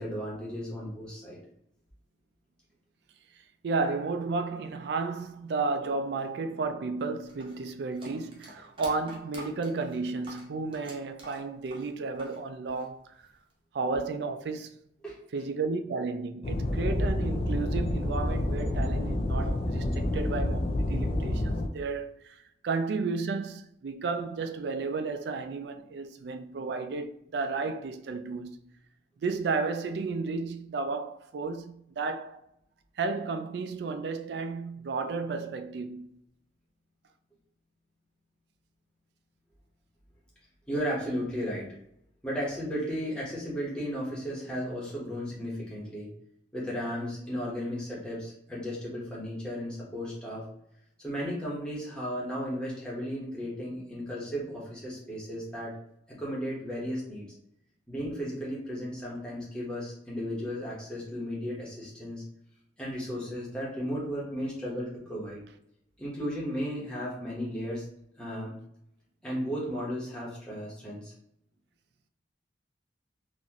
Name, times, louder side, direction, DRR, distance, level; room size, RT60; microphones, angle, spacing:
voice 1, 0.0-1.4 15.0-15.2 40.7-41.7 42.2-46.1 46.5-50.5 51.0-55.8 56.1-57.3 57.9-62.2 62.8-65.4 66.0-67.8 68.2-68.6 69.2-71.1, equal, 5° left, 1.1 m, -35 dB
voice 2, 3.6-13.3 13.7-14.7 15.3-28.6 29.2-32.4 33.0-36.1, right 4 dB, 65° right, 0.3 m, -33 dB
sound 1, 7.3-12.4 12.7-13.5, right 1 dB, 30° right, 0.8 m, -48 dB
sound 2, 16.4-21.7, left 1 dB, 30° left, 0.3 m, -28 dB
4.0 x 2.4 x 3.0 m
head